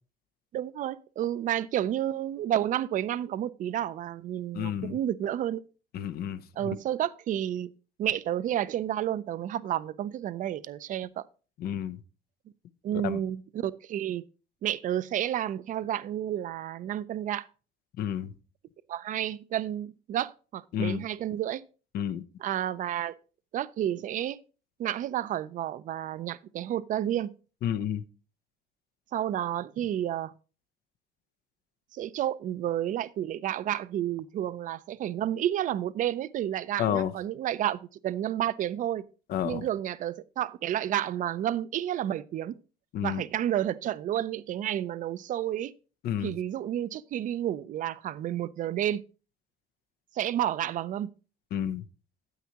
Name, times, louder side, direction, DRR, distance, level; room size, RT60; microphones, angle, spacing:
voice 1, 0.5-5.6 6.6-7.7 8.0-11.2 12.8-14.2 14.6-17.5 18.9-21.6 22.4-23.1 23.5-24.4 24.8-27.3 29.1-30.3 31.9-39.0 39.4-42.6 43.0-45.7 46.2-49.0 50.1-51.1, right 11 dB, 50° right, 0.4 m, -31 dB
voice 2, 4.5-5.0 5.9-6.4 11.6-12.0 13.0-13.2 18.0-18.3 20.7-21.0 21.9-22.2 27.6-28.0 36.8-37.1 39.3-39.7 42.9-43.2 46.0-46.3 51.5-51.8, left 10 dB, 65° left, 0.7 m, -30 dB
9.4 x 8.2 x 2.9 m
cardioid pair, 110°, 17 cm